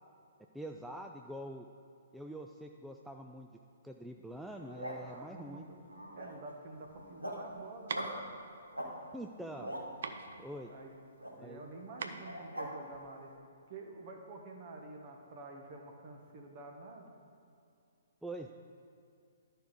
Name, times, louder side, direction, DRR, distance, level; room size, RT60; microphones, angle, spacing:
voice 1, 0.5-1.7 2.1-3.5 3.8-5.7 9.1-9.7 10.4-10.7 11.4-11.6 18.2-18.5, right 1 dB, ahead, 2 dB, 0.3 m, -45 dB
sound 1, 4.5-5.1 5.8-6.5 6.9-7.5 7.9-8.2 8.7-8.9 9.3-9.9 11.2-11.3 12.2-12.7, equal, 85° right, 1.6 m, -42 dB
voice 2, 4.9-5.8 6.2-8.1 10.5-10.9 11.4-13.3 13.7-17.1, right 2 dB, 35° right, 2 dB, 1.3 m, -49 dB
sound 2, 6.7-13.3, right 5 dB, 55° right, 0.6 m, -45 dB
12.0 x 4.6 x 5.2 m, 2.5 s
figure-of-eight pair, 125°, 0 cm